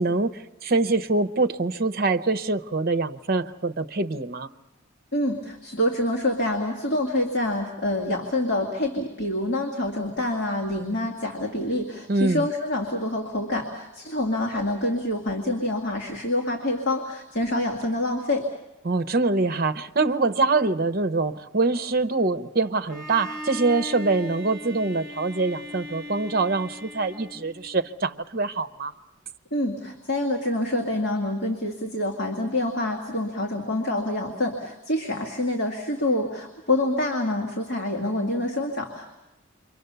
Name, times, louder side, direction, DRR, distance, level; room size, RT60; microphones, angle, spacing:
voice 1, 0.0-4.5 12.1-12.5 18.8-28.9, right 3 dB, 45° right, 10 dB, 0.8 m, -24 dB
voice 2, 5.1-18.5 29.5-39.1, left 1 dB, 55° left, 0 dB, 2.2 m, -26 dB
Bowed string instrument, 22.9-27.9, left 1 dB, 5° left, 2.6 m, -38 dB
28.0 x 24.5 x 6.8 m, 0.99 s
head